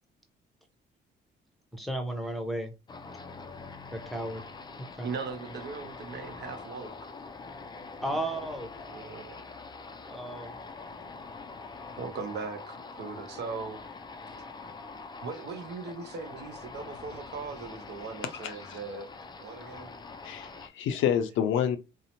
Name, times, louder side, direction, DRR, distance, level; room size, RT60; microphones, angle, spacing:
voice 1, 1.7-2.7 3.9-4.4 4.8-5.1 8.0-8.7 10.1-10.5, right 1 dB, ahead, 0.7 m, -34 dB
sound 1, 2.9-20.7, left 4 dB, 20° left, 0.3 m, -44 dB
voice 2, 5.0-6.9 8.1-8.2 8.9-9.4 12.0-13.8 15.2-19.1 19.4-19.9, right 4 dB, 60° right, 0.6 m, -39 dB
voice 3, 18.4-18.8 20.2-21.8, left 9 dB, 80° left, 0.5 m, -28 dB
2.7 x 2.0 x 2.8 m
cardioid pair, 90°, 20 cm